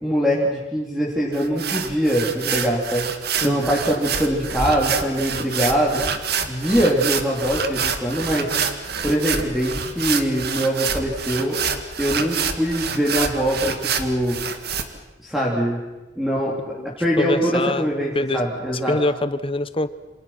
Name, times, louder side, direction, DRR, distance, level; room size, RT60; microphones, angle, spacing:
voice 1, 0.0-3.1 3.4-6.0 6.5-8.5 9.0-11.6 12.0-14.4 15.2-15.8 16.2-16.5 17.0-19.0, equal, ahead, -4 dB, 3.7 m, -22 dB
sound 1, 1.3-14.8, right 6 dB, 60° right, 1.9 m, -27 dB
voice 2, 17.2-17.9 18.1-18.4 18.9-19.9, left 2 dB, 30° left, 13 dB, 1.0 m, -24 dB
28.0 x 27.0 x 6.0 m, 1.1 s
head